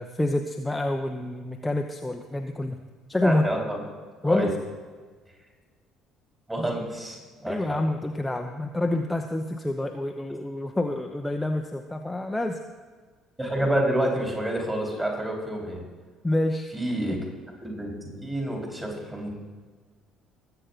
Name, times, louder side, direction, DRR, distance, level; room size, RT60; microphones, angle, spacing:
voice 1, 0.0-2.8 3.1-3.5 4.2-4.6 7.5-12.6 16.2-16.7 17.1-17.2, left 1 dB, 10° left, 4 dB, 0.8 m, -27 dB
voice 2, 3.2-3.8 4.2-4.5 6.5-7.8 13.4-15.8 16.7-17.2 17.6-19.3, right 1 dB, 15° right, -1 dB, 4.2 m, -28 dB
21.0 x 7.9 x 4.0 m, 1.5 s
figure-of-eight pair, 50°, 0 cm